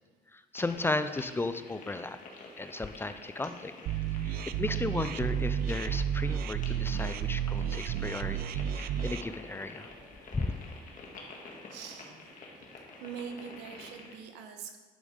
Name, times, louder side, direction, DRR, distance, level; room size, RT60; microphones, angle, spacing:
voice 1, 0.3-2.2 2.6-3.7 4.2-9.9 10.3-10.5, left 2 dB, 15° left, 11 dB, 0.4 m, -35 dB
sound 1, 0.5-14.2, left 3 dB, 50° left, 1.7 m, -49 dB
sound 2, 3.9-9.2, right 9 dB, 60° right, 0.4 m, -32 dB
sound 3, 6.7-13.9, equal, 10° right, 2.2 m, -58 dB
voice 2, 11.7-12.1 12.7-14.8, right 7 dB, 90° right, 6 dB, 1.1 m, -43 dB
11.0 x 5.1 x 5.1 m, 1.4 s
cardioid pair, 110°, 17 cm